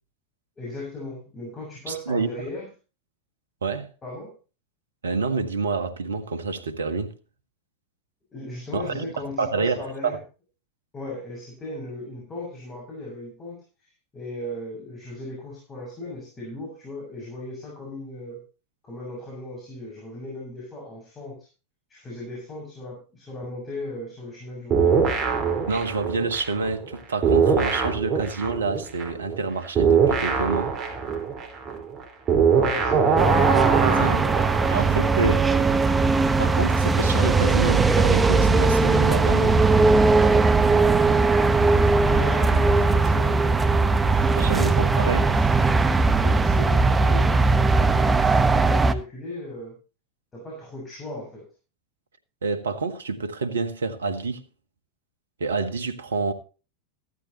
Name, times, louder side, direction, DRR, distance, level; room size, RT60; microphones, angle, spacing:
voice 1, 0.6-2.7 4.0-4.3 8.3-10.2 10.9-18.4 18.8-21.5 21.9-24.9 32.5-35.4 42.0-45.5 46.2-49.8 50.3-51.4, left 1 dB, 25° left, 6.7 m, -37 dB
voice 2, 1.9-2.3 3.6-3.9 5.0-7.1 8.7-9.0 9.4-10.2 25.7-30.7 33.8-34.2 34.7-35.4 36.4-39.6 44.4-45.3 52.4-54.4 55.4-56.3, right 4 dB, 80° right, 1.6 m, -27 dB
sound 1, 24.7-27.0 27.2-34.8, right 6 dB, 35° right, 4.6 m, -22 dB
sound 2, 33.2-48.9, right 3 dB, 15° right, 1.2 m, -19 dB
15.5 x 13.0 x 3.0 m
figure-of-eight pair, 90°, 0 cm